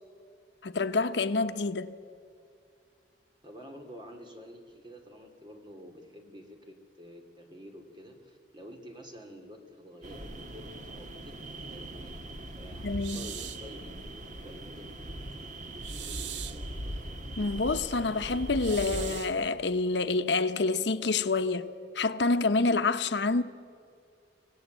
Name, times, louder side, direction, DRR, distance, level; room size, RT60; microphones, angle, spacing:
voice 1, 0.6-1.9 12.8-13.3 17.4-21.7 21.9-23.4, left 3 dB, 75° left, 0.9 m, -27 dB
voice 2, 3.4-11.3 11.7-12.1 12.5-14.0 14.4-14.9 15.7-17.0, equal, 25° right, 2.9 m, -49 dB
sound 1, 10.0-19.2, right 1 dB, 45° right, 1.6 m, -40 dB
sound 2, 13.0-13.7 15.8-16.7 18.6-19.4, right 11 dB, 85° right, 0.8 m, -41 dB
26.0 x 17.5 x 8.1 m
head